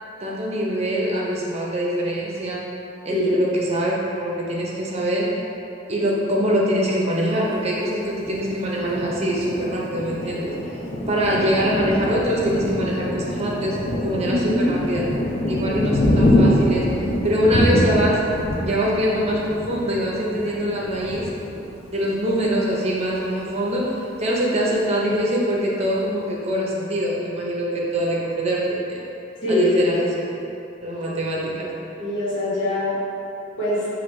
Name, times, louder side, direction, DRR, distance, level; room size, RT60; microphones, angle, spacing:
voice 1, 0.2-2.6 3.0-5.3 5.9-10.6 11.1-15.0 15.5-16.9 17.2-18.3 18.6-21.3 21.9-29.0 29.5-30.2 30.8-31.7, equal, 35° right, -4 dB, 0.6 m, -23 dB
Thunder, 8.2-22.6 23.0-23.2 23.5-24.1, left 1 dB, 30° left, 0.6 m, -25 dB
voice 2, 14.3-14.7 29.4-29.8 32.0-32.9 33.6-33.9, left 1 dB, 70° left, -9 dB, 1.4 m, -23 dB
6.0 x 2.5 x 3.1 m, 2.8 s
head